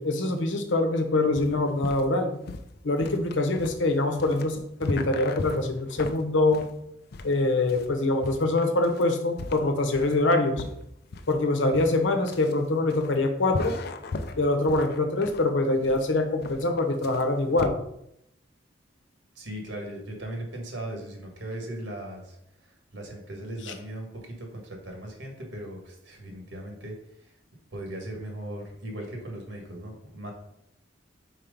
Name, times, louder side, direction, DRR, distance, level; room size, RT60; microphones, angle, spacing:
voice 1, 0.0-2.4 2.8-6.7 7.2-10.6 11.3-13.7 14.4-17.8 23.6-23.7, left 2 dB, 80° left, 6 dB, 0.9 m, -24 dB
sound 1, 1.4-17.7, left 3 dB, 55° left, 0.5 m, -37 dB
voice 2, 19.4-26.9 27.2-27.3 27.7-30.3, right 1 dB, 75° right, 1 dB, 1.9 m, -38 dB
4.7 x 4.5 x 5.2 m, 0.78 s
head